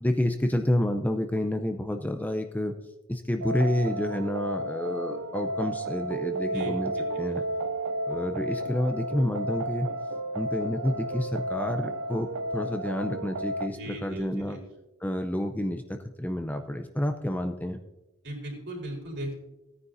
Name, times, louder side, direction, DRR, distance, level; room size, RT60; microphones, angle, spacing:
voice 1, 0.0-2.7 3.1-6.9 7.2-7.4 8.1-9.9 10.3-12.3 12.5-14.6 15.0-17.8, left 1 dB, 10° left, 6 dB, 0.5 m, -29 dB
sound 1, 3.4-13.7, right 1 dB, 80° right, 0.4 m, -32 dB
voice 2, 6.5-7.4 13.7-14.6 18.2-19.4, equal, 55° right, 0 dB, 4.1 m, -38 dB
17.0 x 9.6 x 2.6 m, 1.0 s
head